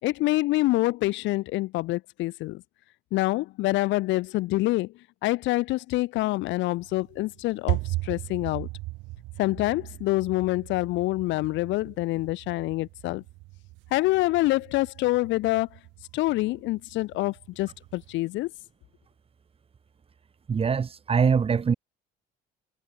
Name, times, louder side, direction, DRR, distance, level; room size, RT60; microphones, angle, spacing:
voice 1, 0.0-2.6 3.1-4.9 5.2-8.7 9.4-13.2 13.9-15.7 16.1-18.5, left 19 dB, 80° left, 5.3 m, -26 dB
sound 1, 6.8-18.1, right 21 dB, 90° right, 5.8 m, -38 dB
voice 2, 20.5-21.7, right 6 dB, 30° right, 3.6 m, -23 dB
cardioid pair, 125°, 19 cm